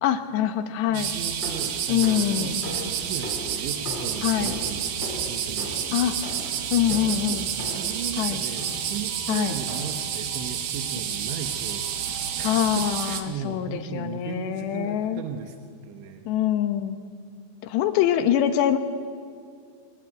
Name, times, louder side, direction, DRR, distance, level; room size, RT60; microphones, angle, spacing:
voice 1, 0.0-1.1 1.9-2.6 4.2-4.5 5.9-6.2 6.7-7.5 8.2-8.4 9.3-9.6 12.4-15.2 16.3-17.0 17.6-18.8, left 11 dB, 75° left, 8 dB, 3.3 m, -24 dB
sound 1, 0.9-13.2, right 8 dB, 65° right, 3.1 m, -30 dB
voice 2, 0.9-6.5 6.9-15.6 15.8-16.3, right 7 dB, 85° right, 5 dB, 3.5 m, -37 dB
sound 2, 1.4-8.1 8.6-9.0 9.7-10.2, left 2 dB, 25° left, 4.2 m, -39 dB
24.5 x 19.5 x 9.4 m, 2.2 s
omnidirectional pair, 5.2 m